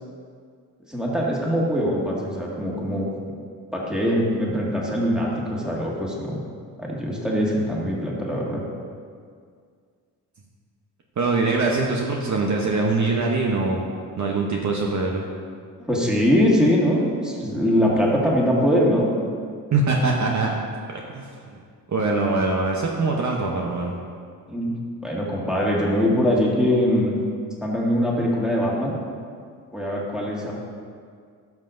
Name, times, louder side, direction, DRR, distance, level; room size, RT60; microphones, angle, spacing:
voice 1, 0.9-3.1 3.7-6.4 6.8-8.6 15.8-19.1 24.5-24.8 25.0-27.2 27.6-28.9 29.7-30.5, equal, ahead, -4 dB, 1.9 m, -22 dB
voice 2, 11.2-13.8 14.2-15.2 19.7-20.5 21.1-21.6 21.9-23.9, right 3 dB, 45° right, -1 dB, 0.9 m, -23 dB
12.0 x 5.9 x 2.6 m, 2.1 s
supercardioid pair, 70°, 40 cm